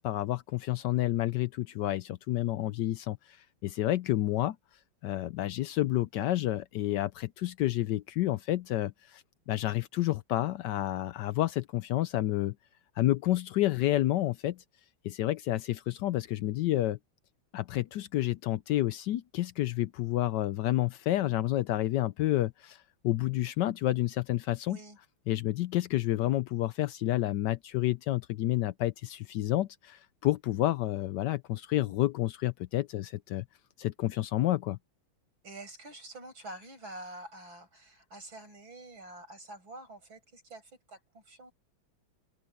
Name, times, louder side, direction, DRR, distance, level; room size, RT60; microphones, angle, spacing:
voice 1, 0.0-3.2 3.6-4.6 5.0-12.5 13.0-14.6 15.0-17.0 17.5-24.8 25.3-33.4 33.8-34.8, left 15 dB, 75° left, 1.1 m, -29 dB
voice 2, 24.7-25.0 35.4-41.5, right 2 dB, 75° right, 8.9 m, -47 dB
open air
omnidirectional pair, 2.2 m